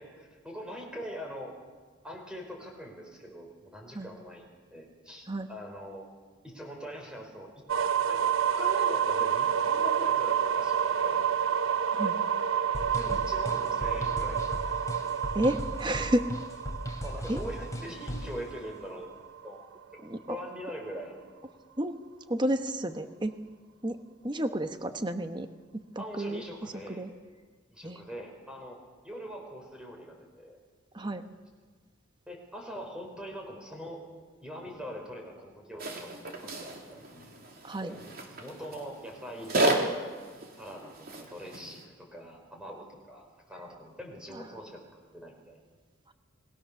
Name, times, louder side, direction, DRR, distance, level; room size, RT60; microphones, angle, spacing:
voice 1, 0.0-1.5 2.0-6.1 6.4-7.5 8.1-11.3 12.9-14.7 17.0-19.1 19.4-19.6 20.3-21.1 26.0-27.0 27.7-28.8 29.0-30.6 32.3-34.0 34.4-37.3 37.8-38.0 38.4-39.9 40.5-44.8 45.1-45.6, equal, 5° right, 0 dB, 5.4 m, -42 dB
sound 1, 7.7-19.5, right 8 dB, 80° right, 0.8 m, -29 dB
sound 2, 12.7-18.4, equal, 15° left, 3.1 m, -37 dB
voice 2, 15.3-16.3 17.3-17.4 20.0-20.4 21.8-21.9 22.3-23.3 23.8-24.0 24.2-25.5 25.7-26.4 26.9-27.1 27.8-28.0 30.9-31.2 37.6-37.9 44.3-44.4 46.1-46.2, right 1 dB, 20° right, 8 dB, 1.1 m, -31 dB
sound 3, 35.8-41.9, right 1 dB, 45° right, 3.3 m, -33 dB
28.5 x 21.5 x 7.1 m, 1.5 s
head